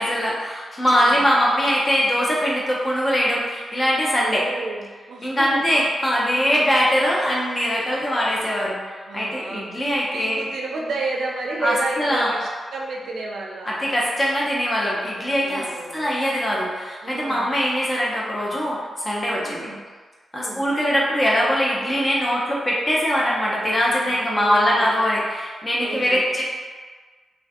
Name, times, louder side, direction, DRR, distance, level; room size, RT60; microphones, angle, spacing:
voice 1, 0.0-4.4 5.2-10.4 11.6-12.3 13.6-15.7 15.9-19.7 20.3-26.4, equal, 35° left, -5 dB, 0.5 m, -22 dB
voice 2, 4.2-5.3 5.5-5.8 6.3-6.7 9.1-9.7 10.1-13.7 15.4-16.1 17.0-17.5 19.4-19.8 20.3-20.6 24.3-25.0 25.8-26.3, right 3 dB, 80° right, -1 dB, 0.4 m, -31 dB
2.4 x 2.2 x 2.5 m, 1.4 s
cardioid pair, 55°, 0 cm